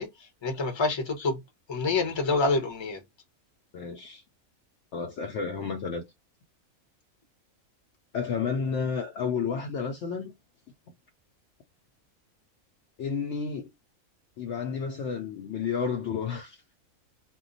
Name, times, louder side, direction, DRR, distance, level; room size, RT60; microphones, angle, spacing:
voice 1, 0.0-1.4 1.7-3.0, left 3 dB, 25° left, 0.7 m, -27 dB
voice 2, 3.7-4.2 4.9-6.0 8.1-10.3 13.0-13.7 14.4-16.6, left 6 dB, 65° left, 0.8 m, -31 dB
2.2 x 2.2 x 3.8 m
omnidirectional pair, 1.5 m